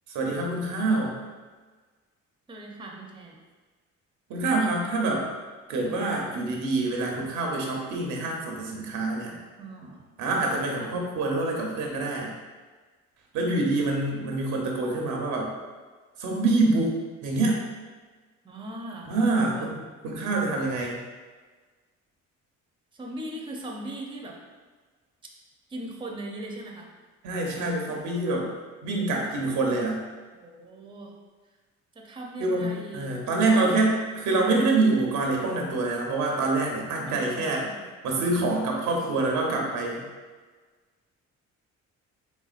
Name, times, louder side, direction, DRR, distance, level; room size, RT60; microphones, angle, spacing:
voice 1, 0.1-1.2 4.3-5.3 5.7-9.3 10.2-12.3 13.3-15.5 16.2-17.0 17.2-17.6 19.1-21.0 27.2-28.5 28.8-30.0 32.4-34.0 34.3-37.7 38.0-40.1, right 2 dB, 85° right, -1 dB, 0.9 m, -26 dB
voice 2, 2.5-3.4 9.6-10.0 10.7-10.9 13.5-13.8 18.4-19.7 22.9-24.4 25.7-26.9 30.3-31.1 31.9-33.2 33.5-34.0 37.1-37.8, right 1 dB, 15° right, -1 dB, 0.6 m, -39 dB
4.1 x 3.5 x 2.5 m, 1.4 s
cardioid pair, 90°, 30 cm